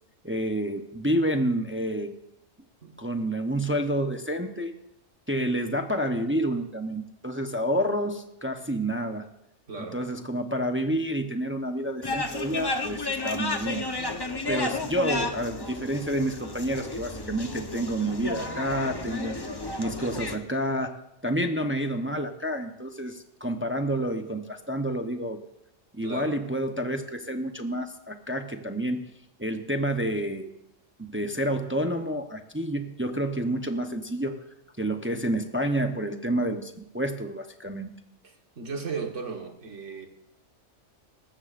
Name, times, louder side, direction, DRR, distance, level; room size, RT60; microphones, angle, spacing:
voice 1, 0.2-2.1 3.0-4.7 5.3-9.3 9.9-13.9 14.5-19.4 19.8-25.4 25.9-29.1 29.4-30.5 31.0-34.4 34.8-37.9, right 1 dB, 10° right, 5 dB, 0.6 m, -29 dB
voice 2, 9.7-10.0 26.0-26.4 38.2-40.1, right 4 dB, 70° right, 3 dB, 1.8 m, -36 dB
sound 1, 12.0-20.4, left 2 dB, 20° left, 0.8 m, -32 dB
19.5 x 15.0 x 2.5 m, 0.84 s
omnidirectional pair, 1.3 m